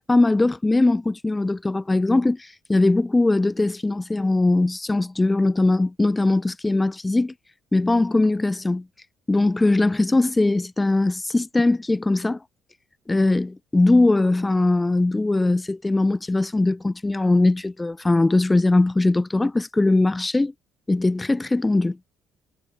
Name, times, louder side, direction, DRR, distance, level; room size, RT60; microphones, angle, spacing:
voice 1, 0.0-7.3 7.7-8.8 9.3-12.4 13.1-20.5 20.9-22.0, left 2 dB, 15° left, 0.3 m, -20 dB
supercardioid pair, 85°, 0 cm